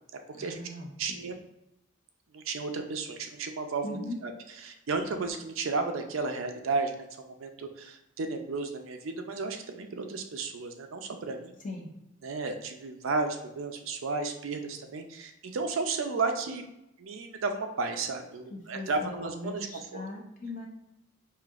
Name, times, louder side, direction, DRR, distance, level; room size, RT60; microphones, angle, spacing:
voice 1, 0.3-1.2 3.8-4.2 11.6-11.9 18.5-20.7, left 2 dB, 40° left, 0 dB, 0.7 m, -39 dB
voice 2, 1.0-1.4 2.3-4.3 4.6-11.5 12.2-16.6 17.0-19.7 19.9-20.0, right 3 dB, 80° right, 5 dB, 0.5 m, -33 dB
4.9 x 2.7 x 2.4 m, 0.86 s
head